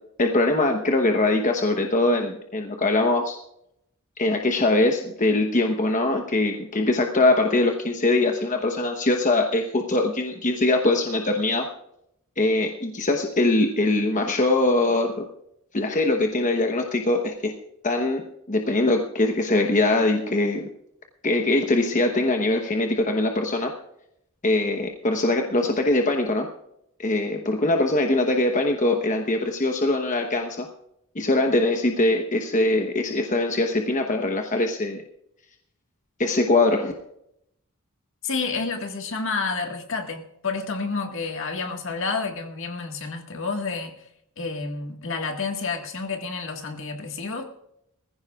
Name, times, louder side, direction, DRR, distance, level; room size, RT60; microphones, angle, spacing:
voice 1, 0.2-3.4 4.2-11.6 12.4-15.2 15.7-17.5 17.8-18.2 18.5-20.7 21.2-23.7 24.4-26.5 27.0-30.7 31.1-35.0 36.2-36.9, left 2 dB, 35° left, 1.0 m, -22 dB
voice 2, 38.2-43.9 44.4-47.5, left 4 dB, 60° left, 1.8 m, -29 dB
20.0 x 15.0 x 2.4 m
head